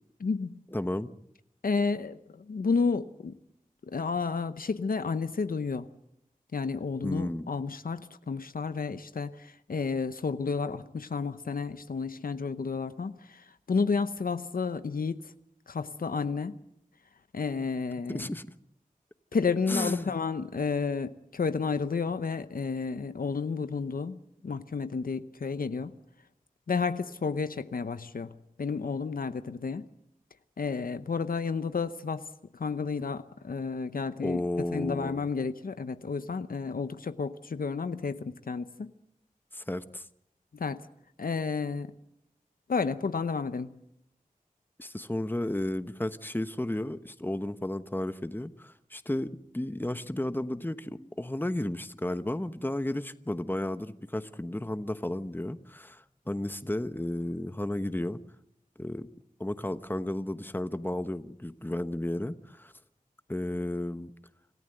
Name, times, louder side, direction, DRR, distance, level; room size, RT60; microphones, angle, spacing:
voice 1, 0.2-0.6 1.6-3.4 3.9-5.9 6.5-13.4 13.7-15.2 15.7-16.6 17.3-18.3 19.3-25.9 26.7-28.3 28.6-29.8 30.6-32.3 32.5-34.4 34.7-38.9 40.6-40.8 41.2-41.9 42.7-43.7, left 5 dB, 85° left, 0.9 m, -31 dB
voice 2, 0.7-1.1 7.0-7.5 18.1-18.5 19.7-20.1 34.2-35.3 39.5-40.0 44.8-58.2 58.8-59.1 59.4-62.7 63.3-64.1, left 1 dB, 15° left, 1.1 m, -33 dB
27.0 x 14.5 x 7.9 m
wide cardioid pair, 45°, 14 cm